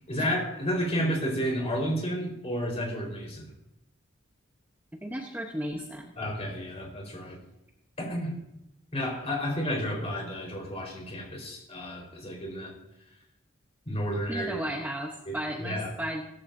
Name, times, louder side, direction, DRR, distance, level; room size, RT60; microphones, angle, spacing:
voice 1, 0.1-3.5 6.2-7.4 8.0-8.4 8.9-12.7 13.9-14.6 15.3-15.9, equal, 30° left, -1 dB, 4.5 m, -31 dB
voice 2, 4.9-6.1 14.3-16.2, equal, 10° right, 1 dB, 1.0 m, -34 dB
17.5 x 14.5 x 2.7 m, 0.84 s
head